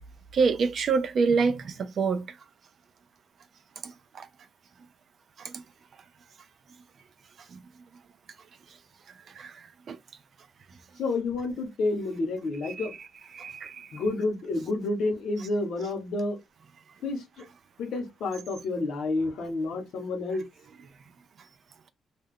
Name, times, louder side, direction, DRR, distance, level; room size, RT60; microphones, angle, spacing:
voice 1, 0.3-2.3 4.1-4.3 5.4-5.5 9.4-9.5 9.9-10.0 13.4-13.9, right 5 dB, 55° right, 0.4 m, -26 dB
voice 2, 11.0-12.9 13.9-16.4 17.0-17.4 17.8-20.5, left 2 dB, 75° left, 0.8 m, -29 dB
2.2 x 2.1 x 3.6 m
cardioid pair, 90°, 0 cm